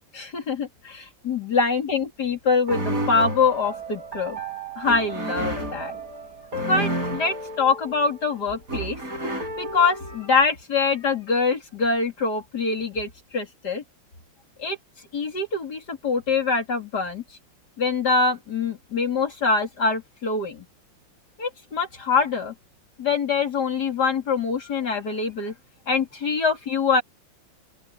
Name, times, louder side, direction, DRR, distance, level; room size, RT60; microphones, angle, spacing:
voice 1, 0.1-4.4 4.8-6.0 6.5-9.3 9.6-13.8 14.6-14.8 15.1-17.2 17.8-20.6 21.4-22.5 23.0-25.5 25.9-27.0, left 4 dB, 55° left, 3.3 m, -24 dB
sound 1, 2.7-10.4, right 1 dB, 45° right, 4.8 m, -31 dB
open air
omnidirectional pair, 2.1 m